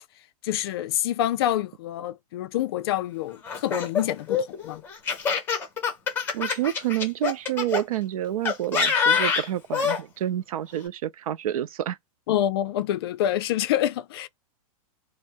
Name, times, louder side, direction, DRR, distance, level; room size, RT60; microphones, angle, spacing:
voice 1, 0.4-4.8 12.3-14.3, left 12 dB, 45° left, 0.4 m, -27 dB
Laughter, 3.4-7.8 8.5-10.0, left 6 dB, 10° left, 0.8 m, -25 dB
voice 2, 6.3-12.0, right 12 dB, 75° right, 0.4 m, -28 dB
2.6 x 2.0 x 3.3 m
supercardioid pair, 165°, 19 cm